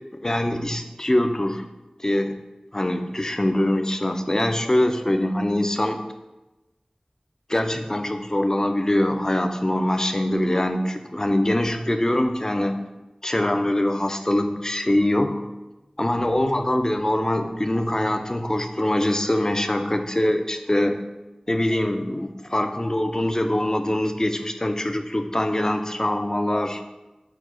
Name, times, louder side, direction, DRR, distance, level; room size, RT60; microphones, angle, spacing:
voice 1, 0.2-1.6 2.0-2.4 2.7-6.0 7.5-12.8 13.2-15.5 16.0-21.0 21.5-26.8, left 1 dB, 25° left, 7 dB, 0.3 m, -23 dB
4.5 x 2.1 x 4.6 m, 1.1 s
wide cardioid pair, 45°, 2 cm